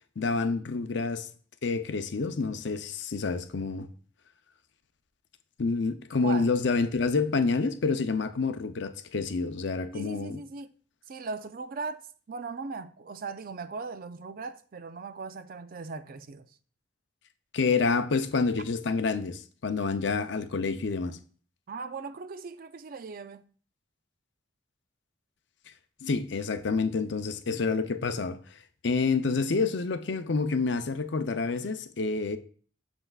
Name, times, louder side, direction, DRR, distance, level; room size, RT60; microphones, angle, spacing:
voice 1, 0.2-1.3 1.6-3.9 5.6-10.4 17.5-21.2 26.0-28.4 28.8-32.4, left 4 dB, 65° left, 0.6 m, -28 dB
voice 2, 6.2-6.5 9.9-10.7 11.1-16.5 21.7-23.4, right 4 dB, 50° right, 0.4 m, -38 dB
7.8 x 6.9 x 2.4 m
head